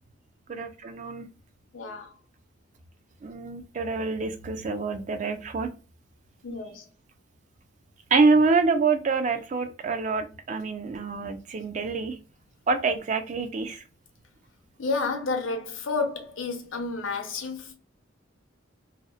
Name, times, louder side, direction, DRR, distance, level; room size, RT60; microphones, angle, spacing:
voice 1, 0.5-1.3 3.2-5.7 8.1-12.2 12.7-13.8, right 4 dB, 40° right, 0.3 m, -26 dB
voice 2, 1.7-2.1 6.4-6.9 14.8-17.7, left 3 dB, 85° left, 0.7 m, -31 dB
2.7 x 2.0 x 2.2 m
head